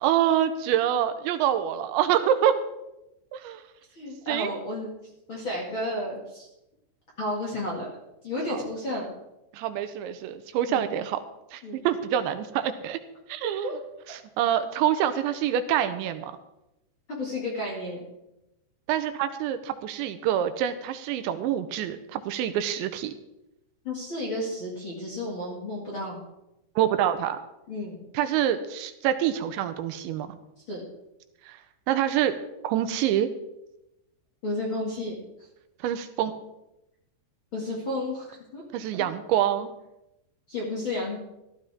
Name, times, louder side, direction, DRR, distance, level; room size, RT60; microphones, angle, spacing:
voice 1, 0.0-2.6 3.3-3.6 4.3-4.5 8.5-8.7 9.5-11.2 11.5-13.0 13.3-13.7 14.1-16.3 18.9-23.1 26.8-27.4 28.1-30.4 31.4-31.6 31.9-32.4 32.6-33.3 35.8-36.3 38.7-39.7, right 10 dB, 85° right, 10 dB, 2.9 m, -26 dB
voice 2, 4.0-4.9 5.3-6.5 7.2-7.9 8.2-9.1 10.7-10.8 11.6-11.8 13.4-13.7 17.1-18.0 23.8-26.2 27.7-28.0 30.7-30.8 34.4-35.1 37.5-38.6 40.5-41.2, left 1 dB, 40° left, -4 dB, 2.0 m, -32 dB
15.0 x 13.5 x 3.6 m, 0.92 s
omnidirectional pair, 5.4 m